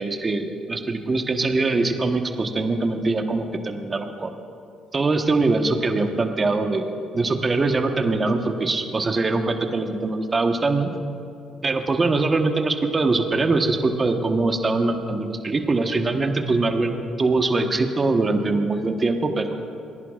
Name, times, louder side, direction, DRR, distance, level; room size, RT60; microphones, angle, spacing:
voice 1, 0.0-4.3 4.9-10.9 11.6-19.5, right 3 dB, 35° right, 5 dB, 1.2 m, -22 dB
27.5 x 11.0 x 2.5 m, 2.6 s
supercardioid pair, 55°, 0 cm